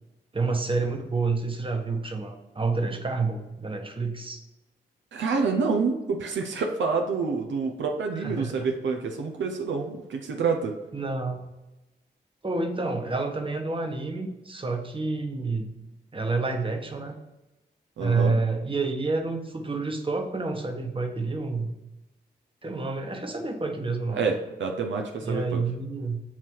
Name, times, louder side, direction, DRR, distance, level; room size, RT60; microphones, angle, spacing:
voice 1, 0.3-4.4 8.1-8.7 10.9-11.4 12.4-15.7 16.1-17.2 18.0-21.7 22.6-24.3 25.2-26.2, right 3 dB, 25° right, 4 dB, 1.1 m, -29 dB
voice 2, 5.1-10.8 18.0-18.3 24.2-25.6, right 4 dB, 80° right, 3 dB, 0.7 m, -27 dB
7.3 x 2.9 x 4.6 m, 1.0 s
cardioid pair, 45°, 19 cm